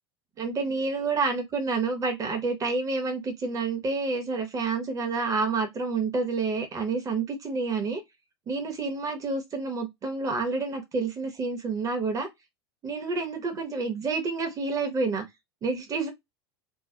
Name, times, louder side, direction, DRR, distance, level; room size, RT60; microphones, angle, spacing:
voice 1, 0.4-8.0 8.5-12.3 12.8-15.2 15.6-16.1, right 4 dB, 25° right, 1.1 m, -29 dB
3.1 x 2.3 x 3.8 m
figure-of-eight pair, 85°, 14 cm